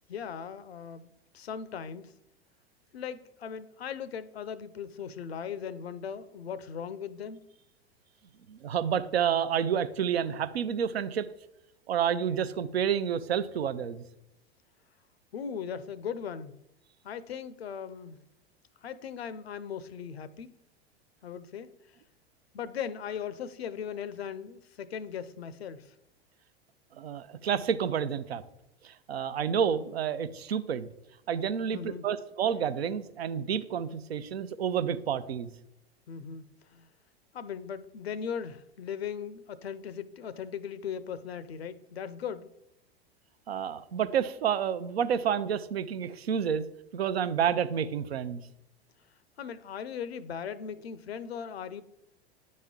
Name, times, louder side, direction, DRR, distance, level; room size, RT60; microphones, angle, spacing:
voice 1, 0.1-2.1 2.9-7.4 15.3-16.5 17.0-18.2 18.8-20.5 21.2-21.7 22.5-25.9 31.7-32.1 36.1-36.9 37.3-42.5 49.4-51.8, left 7 dB, 85° left, 0.6 m, -38 dB
voice 2, 8.5-11.3 11.9-14.0 26.9-28.4 28.8-30.9 31.3-35.5 43.5-46.7 46.9-48.4, right 8 dB, 80° right, 0.6 m, -29 dB
9.4 x 4.3 x 3.7 m
hypercardioid pair, 90°, 31 cm